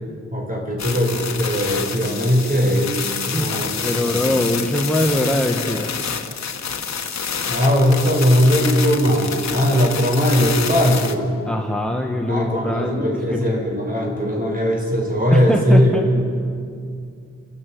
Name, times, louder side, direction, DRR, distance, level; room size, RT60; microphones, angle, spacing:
voice 1, 0.3-3.0 3.3-4.3 7.5-11.3 12.3-16.2, equal, 30° right, 0 dB, 6.4 m, -19 dB
sound 1, 0.8-11.1, left 6 dB, 65° left, 1.5 m, -28 dB
voice 2, 3.8-5.9 11.4-13.6 15.3-16.1, left 1 dB, 5° left, 0 dB, 1.5 m, -22 dB
30.0 x 13.5 x 9.4 m, 2.4 s
wide cardioid pair, 115°, 29 cm